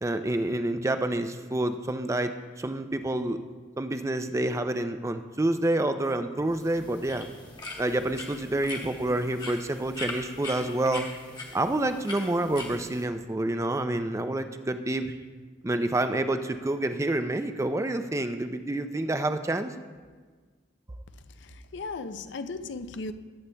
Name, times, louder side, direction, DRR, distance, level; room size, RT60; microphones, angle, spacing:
voice 1, 0.0-3.4 3.8-7.3 7.8-11.1 11.5-15.2 15.6-19.7, right 1 dB, 15° right, 0.4 m, -28 dB
sound 1, 6.5-13.0, left 2 dB, 25° left, 1.2 m, -41 dB
voice 2, 21.3-23.1, left 3 dB, 65° left, 0.5 m, -37 dB
19.5 x 8.4 x 2.2 m
head